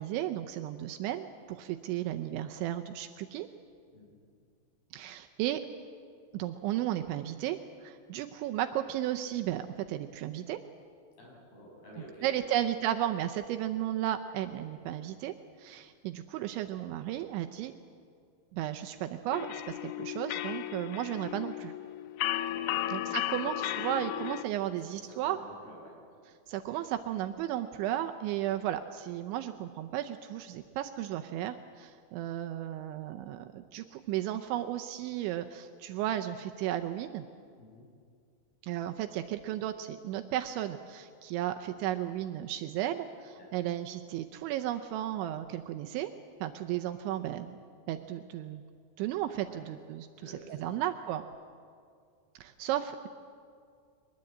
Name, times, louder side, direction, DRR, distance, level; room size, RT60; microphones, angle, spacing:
voice 1, 0.0-3.5 4.9-5.6 6.3-10.6 12.2-17.7 18.5-21.7 22.9-25.4 26.5-37.2 38.6-46.1 46.4-47.6 47.9-48.6 49.0-51.3 52.4-53.1, right 12 dB, 80° right, 7 dB, 2.9 m, -34 dB
voice 2, 11.2-12.6 22.5-22.9 23.2-23.5 24.6-26.0 37.6-37.9 43.4-43.7 49.4-49.6 50.1-50.8, equal, 50° left, -2 dB, 8.2 m, -51 dB
sound 1, 19.3-24.4, left 14 dB, 80° left, 2.9 m, -35 dB
22.5 x 20.5 x 8.6 m, 2.3 s
omnidirectional pair, 5.7 m